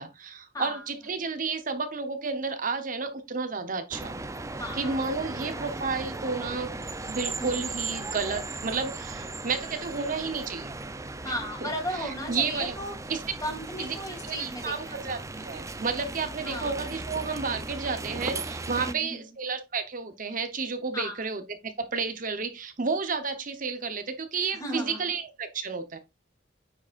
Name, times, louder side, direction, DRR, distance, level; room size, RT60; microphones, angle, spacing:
voice 1, 0.0-4.1 4.7-6.7 7.1-10.8 11.2-11.3 11.6-12.8 13.1-13.2 13.8-13.9 14.3-26.0, right 4 dB, 50° right, 1.0 m, -31 dB
sound 1, 3.9-18.9, right 3 dB, 15° right, 0.6 m, -37 dB
voice 2, 4.6-5.0 5.3-5.7 7.4-7.7 11.2-13.0 13.4-15.0 16.4-16.8 18.8-19.3 20.9-21.2 24.5-25.0, equal, 20° left, 3.0 m, -36 dB
9.7 x 6.9 x 2.5 m
head